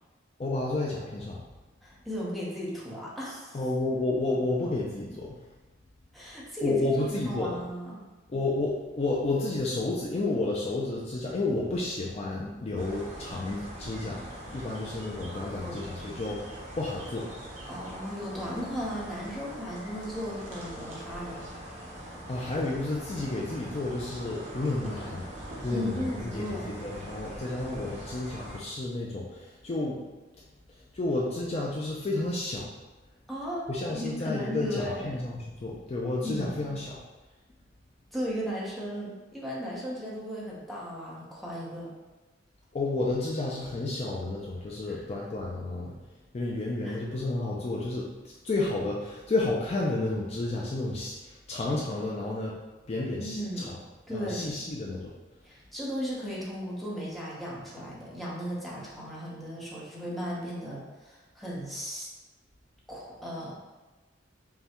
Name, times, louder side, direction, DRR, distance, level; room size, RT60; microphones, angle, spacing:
voice 1, 0.4-1.4 3.5-5.4 6.6-7.6 8.3-17.3 22.3-25.3 25.6-30.0 30.7-32.7 33.7-37.0 42.7-45.9 46.3-52.6 52.9-53.8 54.1-55.1, left 2 dB, 35° left, -3 dB, 0.4 m, -31 dB
voice 2, 1.8-3.6 6.1-6.8 7.1-8.0 15.6-15.8 17.7-21.4 25.7-26.7 33.3-33.6 33.9-35.1 36.2-36.5 38.1-41.9 44.9-45.0 46.8-47.0 53.1-53.7 54.1-54.6 55.4-62.1 62.9-63.5, equal, ahead, -7 dB, 0.9 m, -36 dB
sound 1, 12.8-28.6, right 1 dB, 40° right, 0.9 m, -42 dB
5.3 x 2.3 x 2.9 m, 1.2 s
head